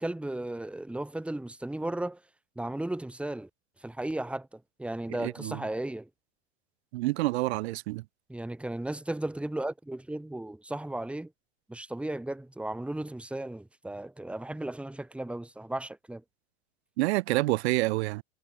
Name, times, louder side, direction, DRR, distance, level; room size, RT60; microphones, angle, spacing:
voice 1, 0.0-2.2 2.6-3.5 3.8-6.1 8.3-11.3 11.7-16.2, right 1 dB, 5° right, 2.6 m, -35 dB
voice 2, 5.2-5.6 6.9-8.0 17.0-18.2, right 20 dB, 75° right, 2.9 m, -28 dB
supercardioid pair, 135°, 33 cm